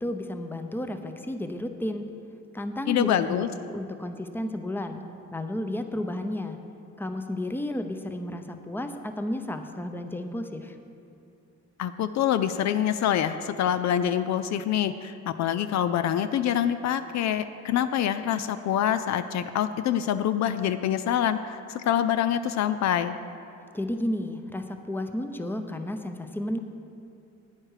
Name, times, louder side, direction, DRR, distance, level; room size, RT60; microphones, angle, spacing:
voice 1, 0.0-2.1 2.5-5.0 5.3-6.6 7.0-10.8 23.7-26.6, left 1 dB, 5° left, 7 dB, 0.7 m, -32 dB
voice 2, 2.9-3.5 11.8-23.2, left 10 dB, 65° left, 11 dB, 0.5 m, -26 dB
11.0 x 9.0 x 4.9 m, 2.6 s
cardioid pair, 90°, 30 cm